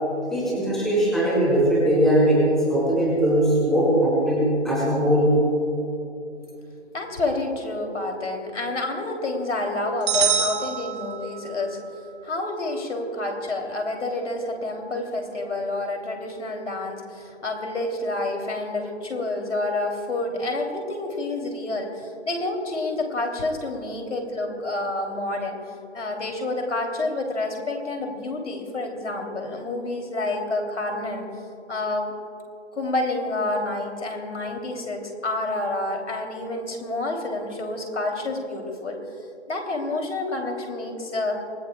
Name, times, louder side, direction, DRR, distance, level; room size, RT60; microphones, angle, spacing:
voice 1, 0.3-5.4, equal, ahead, -8 dB, 4.1 m, -20 dB
voice 2, 6.9-11.8 12.2-25.6 25.9-31.3 31.7-32.1 32.7-39.0 39.5-41.4, left 2 dB, 75° left, 3 dB, 2.9 m, -28 dB
sound 1, 10.1-11.6, right 8 dB, 25° right, 1.0 m, -25 dB
25.5 x 20.0 x 2.2 m, 2.7 s
figure-of-eight pair, 155°, 36 cm